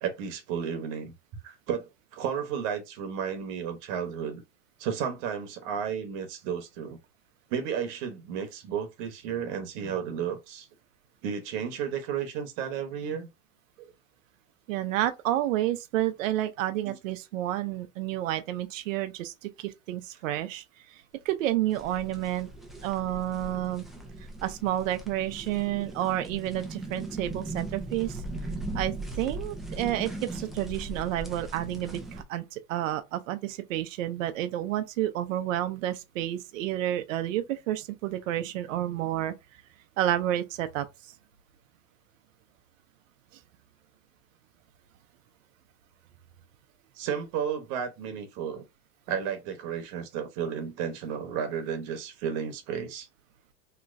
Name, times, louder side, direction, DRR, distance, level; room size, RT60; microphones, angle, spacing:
voice 1, 0.0-1.1 1.4-4.4 4.8-7.0 7.5-10.7 11.2-13.3 16.8-17.0 46.9-48.6 49.1-53.1, right 7 dB, 55° right, 1.0 m, -33 dB
voice 2, 14.7-22.5 22.8-23.8 24.4-28.2 28.7-39.3 40.0-40.9, right 13 dB, 90° right, 0.6 m, -30 dB
sound 1, 21.7-32.2, right 2 dB, ahead, 0.3 m, -39 dB
3.1 x 2.9 x 2.5 m
supercardioid pair, 135°, 37 cm